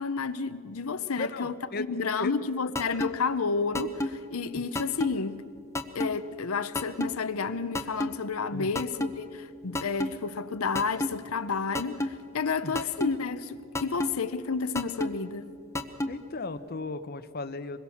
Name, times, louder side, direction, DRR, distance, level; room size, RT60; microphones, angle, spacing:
voice 1, 0.0-5.4 5.9-15.5, left 4 dB, 75° left, 0.8 m, -31 dB
voice 2, 1.0-2.3 8.5-8.7 12.6-12.8 16.1-17.8, left 3 dB, 45° left, 0.8 m, -36 dB
sound 1, 2.8-3.1 3.7-4.1 4.8-5.1 5.8-6.1 6.8-7.1 7.8-8.1 8.8-9.1 9.8-10.1 10.8-11.1 11.8-12.1 12.8-13.1 13.8-14.1 14.8-15.1 15.8-16.1, left 1 dB, 15° left, 0.9 m, -28 dB
25.0 x 21.5 x 7.1 m
head